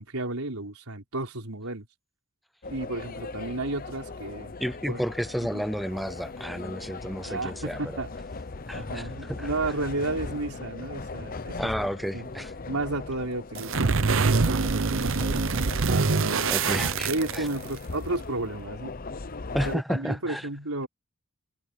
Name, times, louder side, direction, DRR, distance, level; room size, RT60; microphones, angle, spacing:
voice 1, 0.0-1.9 2.7-4.5 4.9-5.0 5.4-5.6 7.2-8.1 8.7-11.6 12.1-12.3 12.7-15.4 16.2-16.7 17.1-19.0 19.6-20.9, right 2 dB, 90° right, 4.4 m, -33 dB
sound 1, 2.6-19.8, left 3 dB, 40° left, 0.8 m, -39 dB
voice 2, 4.6-8.0 8.7-9.5 11.6-12.5 16.5-17.5 19.5-20.5, equal, ahead, 0.4 m, -32 dB
sound 2, 13.6-17.8, right 4 dB, 60° right, 0.8 m, -24 dB
head